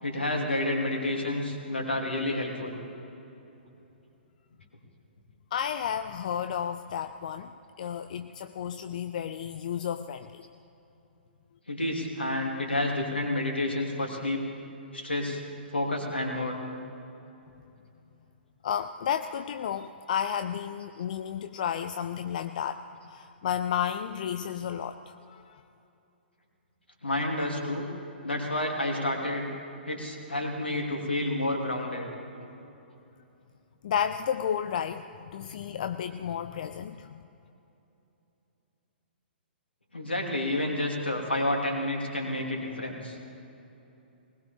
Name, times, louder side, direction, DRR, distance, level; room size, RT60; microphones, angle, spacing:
voice 1, 0.0-2.8 11.7-14.4 14.9-15.4 15.7-16.6 27.0-27.9 28.2-29.5 29.9-32.1 39.9-43.2, left 1 dB, 75° left, 1 dB, 2.8 m, -29 dB
voice 2, 5.5-7.5 7.8-10.4 18.6-25.6 33.8-37.2, left 8 dB, 45° left, 10 dB, 0.5 m, -32 dB
20.0 x 19.5 x 3.5 m, 2.9 s
figure-of-eight pair, 115°, 6 cm